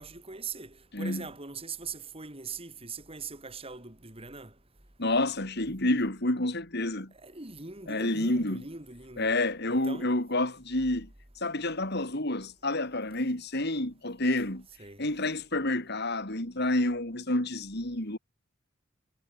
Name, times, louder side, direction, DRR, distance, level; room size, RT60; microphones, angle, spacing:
voice 1, 0.0-4.5 7.1-9.3 9.7-10.2 14.8-15.0, right 4 dB, 30° right, 3.4 m, -41 dB
voice 2, 0.9-1.3 5.0-7.1 7.9-8.6 9.2-11.1 11.4-14.7 15.0-18.2, left 1 dB, 50° left, 4.0 m, -29 dB
head